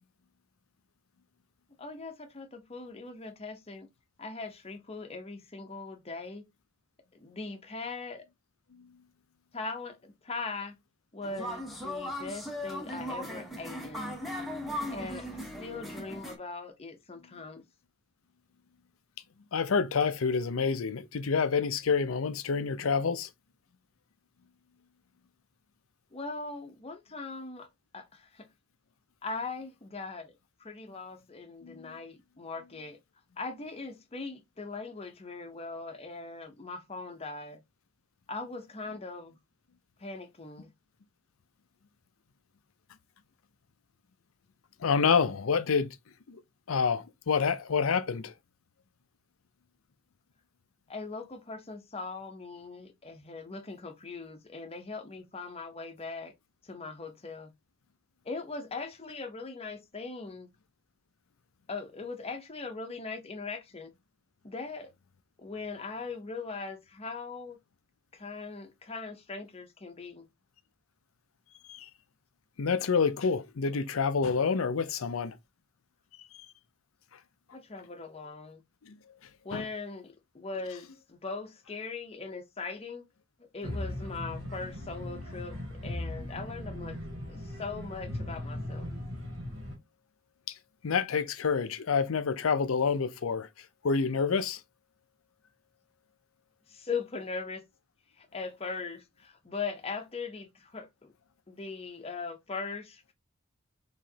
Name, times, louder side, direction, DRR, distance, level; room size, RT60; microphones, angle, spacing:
voice 1, 1.8-3.9 4.2-6.4 7.1-8.2 9.5-10.7 11.1-14.1 14.9-15.3 15.6-17.6 26.1-27.7 27.9-28.5 29.2-30.3 30.6-33.0 33.4-37.6 38.3-39.3 40.0-40.7 50.9-56.3 56.6-57.5 58.2-60.5 61.7-63.9 64.4-64.9 65.4-67.6 68.1-70.3 77.5-78.6 79.4-83.0 83.5-85.6 85.8-86.9 87.3-88.9 96.7-97.6 98.2-101.1 101.5-103.1, left 4 dB, 30° left, 0.8 m, -40 dB
sound 1, 11.2-16.4, left 1 dB, ahead, 1.1 m, -38 dB
voice 2, 19.5-23.3 31.6-31.9 44.8-45.9 46.3-46.4 46.7-48.3 71.7-71.9 72.6-75.3 78.9-79.0 79.5-79.7 90.5-90.6 90.8-93.5 93.8-94.6, left 5 dB, 85° left, 0.6 m, -28 dB
sound 2, 83.6-89.8, left 1 dB, 80° right, 2.1 m, -38 dB
4.8 x 3.1 x 2.8 m
head